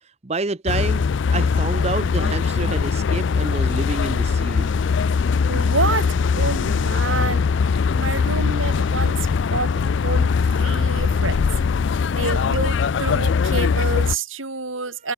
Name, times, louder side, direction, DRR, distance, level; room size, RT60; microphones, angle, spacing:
voice 1, 0.2-1.1 1.3-4.9, right 3 dB, 30° right, 0.8 m, -28 dB
sound 1, 0.7-14.2, left 5 dB, 65° left, 0.4 m, -21 dB
voice 2, 5.5-7.5 8.0-11.4 12.1-15.1, right 3 dB, 80° right, 4.5 m, -28 dB
head